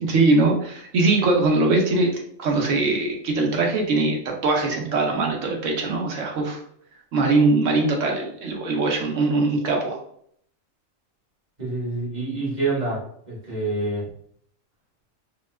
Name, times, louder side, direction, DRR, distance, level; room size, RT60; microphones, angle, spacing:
voice 1, 0.0-6.6 7.1-10.0, right 3 dB, 75° right, 1 dB, 1.1 m, -21 dB
voice 2, 11.6-13.0 13.3-14.0, right 2 dB, 35° right, -6 dB, 1.4 m, -26 dB
2.8 x 2.3 x 3.1 m, 0.66 s
omnidirectional pair, 1.3 m